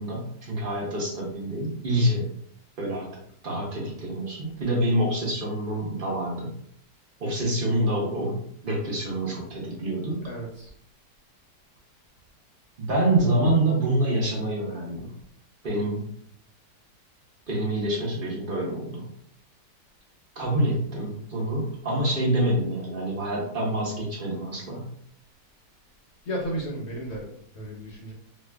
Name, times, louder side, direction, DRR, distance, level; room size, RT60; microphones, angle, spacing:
voice 1, 0.0-2.3 2.8-3.1 3.4-6.5 7.2-10.2 12.8-15.1 15.6-16.1 17.5-19.1 20.4-24.9, right 1 dB, 45° right, -3 dB, 0.7 m, -26 dB
voice 2, 10.2-10.7 26.3-27.2 27.5-28.1, right 1 dB, 50° left, -3 dB, 0.9 m, -33 dB
3.0 x 2.4 x 3.3 m, 0.66 s
omnidirectional pair, 1.8 m